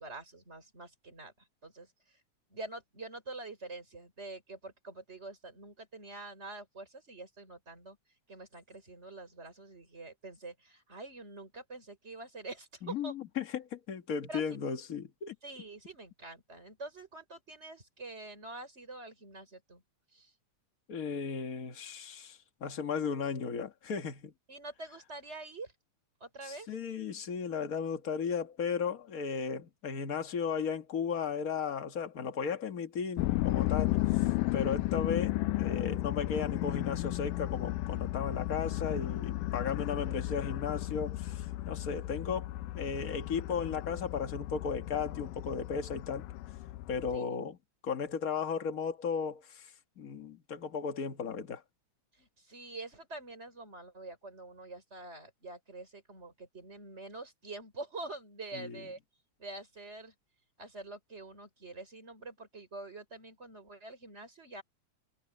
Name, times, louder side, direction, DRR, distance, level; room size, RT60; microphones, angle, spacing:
voice 1, 0.0-1.3 1.6-1.9 2.5-8.0 8.3-13.1 14.3-14.4 15.4-19.8 20.1-20.3 24.5-25.7 26.2-26.7 47.1-47.3 52.2-59.0 59.4-60.1 60.6-64.6, right 2 dB, 20° right, 5.3 m, -46 dB
voice 2, 12.8-15.3 20.9-24.3 26.4-34.0 34.5-46.3 46.9-47.6 47.8-49.7 50.0-51.6 58.5-58.8, left 6 dB, 40° left, 1.2 m, -35 dB
sound 1, 33.2-47.2, left 17 dB, 90° left, 2.2 m, -34 dB
omnidirectional pair, 3.7 m